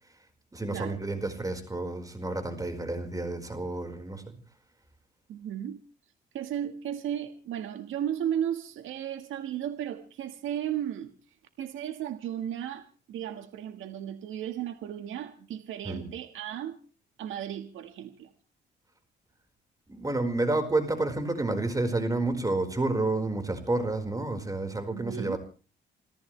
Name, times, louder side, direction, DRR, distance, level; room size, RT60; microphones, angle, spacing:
voice 1, 0.5-4.4 15.8-16.1 19.9-25.4, right 2 dB, 15° right, 7 dB, 4.8 m, -30 dB
voice 2, 5.3-5.8 6.3-11.1 11.6-16.8 17.2-18.3 24.9-25.4, right 10 dB, 80° right, 8 dB, 1.7 m, -35 dB
29.0 x 14.0 x 3.3 m, 0.36 s
cardioid pair, 90°, 20 cm